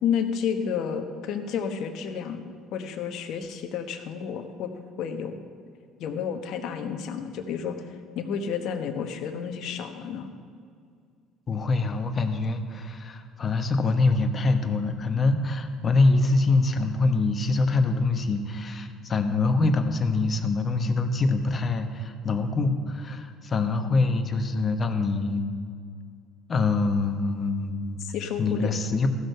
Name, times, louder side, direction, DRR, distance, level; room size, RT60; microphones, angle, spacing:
voice 1, 0.0-2.4 2.7-4.7 5.0-5.3 6.0-10.3 28.0-28.7, left 7 dB, 65° left, 7 dB, 1.1 m, -31 dB
voice 2, 11.5-25.4 26.5-28.0 28.4-29.1, left 3 dB, 40° left, 7 dB, 1.2 m, -24 dB
14.5 x 6.5 x 6.7 m, 2.2 s
hypercardioid pair, 70°, 0 cm